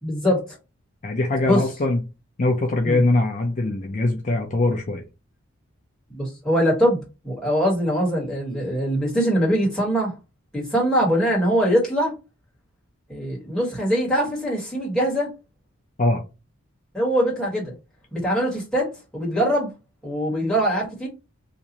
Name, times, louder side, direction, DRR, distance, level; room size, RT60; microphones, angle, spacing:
voice 1, 0.0-0.5 1.5-1.6 2.8-3.0 6.1-10.1 10.5-12.1 13.1-15.3 16.9-17.7 18.1-19.7 20.0-21.1, equal, 5° left, 1.6 m, -22 dB
voice 2, 1.0-2.0 2.4-5.0 16.0-16.2, left 2 dB, 35° left, 0.5 m, -22 dB
3.0 x 2.6 x 3.9 m
head